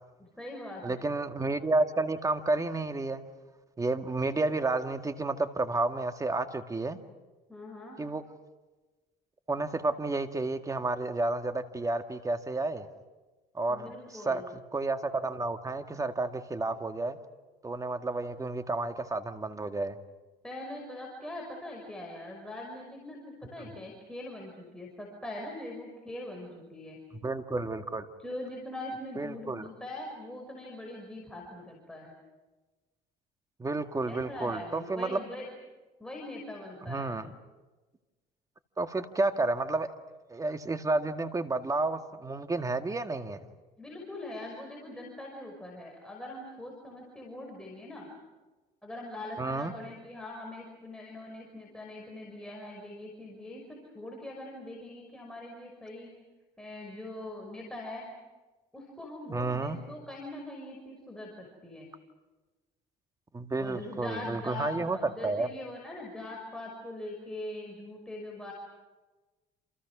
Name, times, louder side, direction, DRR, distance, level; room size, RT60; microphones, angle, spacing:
voice 1, 0.2-1.1 7.5-8.0 13.7-14.4 20.4-27.0 28.2-32.1 34.1-35.5 36.0-37.2 43.8-48.1 48.8-56.1 56.6-58.1 58.7-61.9 63.6-68.5, left 1 dB, 5° left, -1 dB, 5.7 m, -42 dB
voice 2, 0.8-3.2 3.8-7.0 8.0-8.2 9.5-12.9 13.5-17.2 17.6-20.0 23.6-23.7 27.2-28.1 29.2-29.7 33.6-35.2 36.9-37.3 38.8-39.9 40.3-43.4 49.4-49.7 59.3-59.8 63.3-65.0 65.2-65.5, right 2 dB, 20° right, 7 dB, 1.9 m, -31 dB
28.5 x 28.0 x 6.2 m, 1.2 s
cardioid pair, 110°, 17 cm